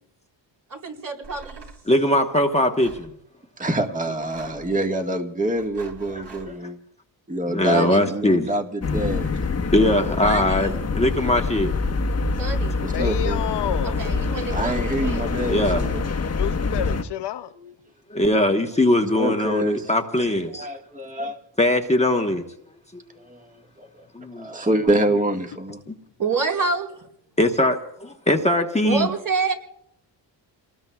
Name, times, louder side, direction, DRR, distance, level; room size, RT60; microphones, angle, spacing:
voice 1, 0.7-1.6 7.7-8.1 10.2-10.8 12.4-12.8 13.8-15.2 26.2-27.1 28.8-29.5, right 4 dB, 45° right, 4.3 m, -27 dB
sound 1, 1.2-1.8 2.8-3.1 4.1-4.7 5.5-6.5, right 3 dB, 70° right, 5.5 m, -44 dB
voice 2, 1.9-3.1 7.5-8.5 9.7-11.7 15.5-15.8 18.1-20.7 21.2-21.3 21.6-22.4 22.9-23.0 24.1-24.5 27.4-29.1, left 1 dB, 15° left, 1.2 m, -21 dB
voice 3, 3.6-6.8 7.3-9.4 12.4-12.5 12.8-13.4 14.5-16.0 17.5-17.7 19.2-19.9 20.6-21.4 23.2-23.5 23.8-24.0 24.4-25.8, right 1 dB, 15° right, 1.7 m, -26 dB
sound 2, 8.8-17.0, left 4 dB, 35° left, 1.2 m, -25 dB
voice 4, 12.9-14.1 16.4-17.5, left 11 dB, 65° left, 0.6 m, -29 dB
29.0 x 19.5 x 2.4 m
cardioid pair, 100°, 44 cm